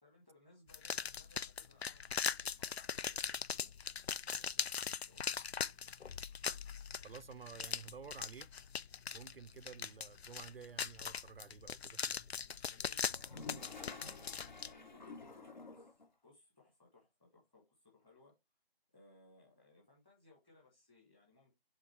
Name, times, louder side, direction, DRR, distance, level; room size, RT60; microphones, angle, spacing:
voice 1, 0.0-3.7 4.2-5.9 12.4-18.3 18.9-21.5, left 2 dB, 10° left, 1.6 m, -66 dB
sound 1, 0.7-14.7, left 7 dB, 90° left, 0.5 m, -41 dB
voice 2, 7.0-8.5 9.1-12.5, right 6 dB, 65° right, 0.5 m, -52 dB
Toilet flush, 13.0-16.1, left 3 dB, 45° left, 1.0 m, -50 dB
7.9 x 3.7 x 3.3 m
figure-of-eight pair, 165°, 31 cm